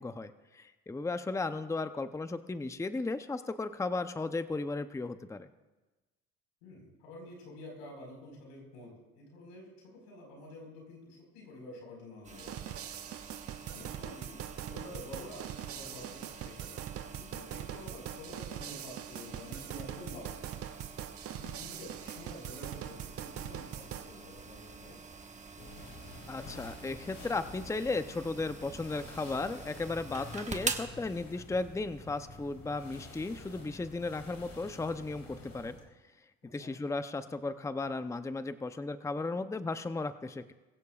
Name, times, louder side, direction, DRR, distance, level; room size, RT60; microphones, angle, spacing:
voice 1, 0.0-5.5 26.3-35.8 36.5-40.5, left 3 dB, 10° left, 11 dB, 0.7 m, -35 dB
voice 2, 6.6-12.8 13.7-20.8 21.4-25.0 36.4-36.7, left 1 dB, 90° left, 0 dB, 4.8 m, -49 dB
sound 1, 12.2-30.9, right 4 dB, 25° right, 1.3 m, -46 dB
sound 2, 12.4-24.1, right 11 dB, 50° right, 0.7 m, -42 dB
sound 3, 25.6-35.9, left 2 dB, 45° left, 3.6 m, -49 dB
21.5 x 16.0 x 2.4 m, 1.2 s
supercardioid pair, 75°, 31 cm